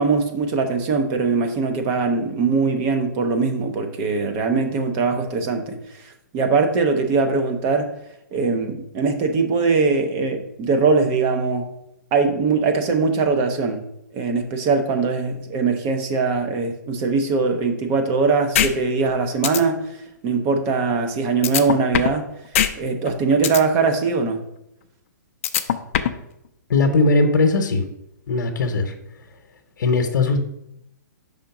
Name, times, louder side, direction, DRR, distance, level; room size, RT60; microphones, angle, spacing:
voice 1, 0.0-5.8 6.3-7.9 8.3-11.7 12.1-13.8 14.1-19.8 20.2-22.2 22.8-24.4, right 4 dB, 25° right, 6 dB, 0.7 m, -21 dB
sound 1, 18.5-18.7 19.1-19.2 19.4-19.6 21.4-22.2 22.5-22.7 23.1-23.6 25.4-26.2, left 10 dB, 40° left, 0.5 m, -20 dB
voice 2, 26.7-27.9 28.3-28.9 29.8-30.4, left 3 dB, 70° left, 4 dB, 0.9 m, -19 dB
5.0 x 3.8 x 5.8 m, 0.79 s
hypercardioid pair, 165°, 10 cm